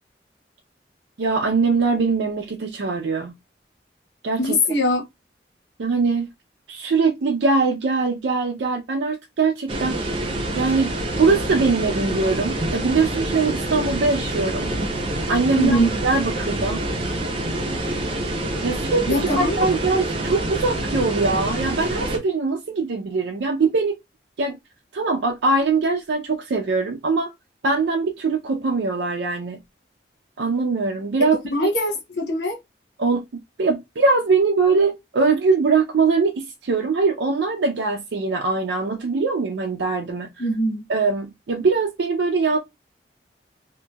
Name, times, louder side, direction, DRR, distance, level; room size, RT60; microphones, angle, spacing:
voice 1, 1.2-3.3 4.2-4.6 5.8-6.3 6.7-10.0 10.6-10.9 11.2-14.7 15.3-15.8 16.0-16.8 18.6-24.0 24.4-24.6 24.9-27.3 27.6-29.6 30.4-31.7 33.0-33.2 33.6-40.5 40.9-42.6, right 4 dB, 90° right, 0.5 m, -22 dB
voice 2, 4.4-5.0 15.5-16.0 19.1-19.6 31.2-32.6 40.4-40.8, equal, 85° left, 0.9 m, -22 dB
sound 1, 9.7-22.2, right 1 dB, 30° right, 0.6 m, -26 dB
2.9 x 2.6 x 2.2 m
head